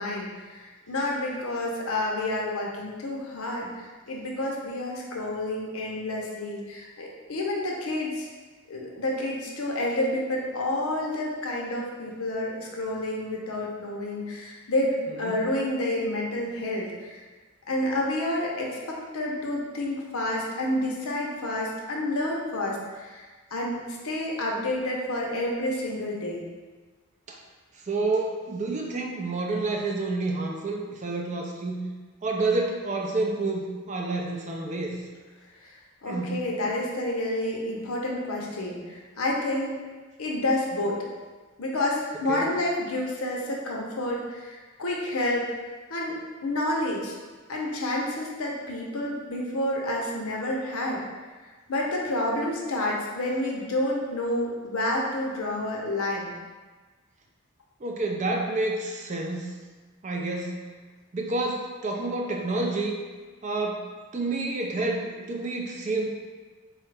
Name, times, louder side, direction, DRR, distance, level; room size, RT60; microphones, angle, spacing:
voice 1, 0.0-8.3 8.7-17.2 17.7-23.2 23.5-26.4 35.6-35.7 36.0-39.8 40.2-41.0 41.6-45.5 45.9-47.2 47.5-51.0 51.7-56.4, left 1 dB, 85° left, -1 dB, 0.7 m, -29 dB
voice 2, 27.9-31.9 32.2-35.0 36.0-36.4 42.3-42.5 57.8-59.6 60.0-60.6 61.1-62.9 63.4-66.1, right 2 dB, 35° right, 1 dB, 0.4 m, -29 dB
4.2 x 2.4 x 3.3 m, 1.3 s
head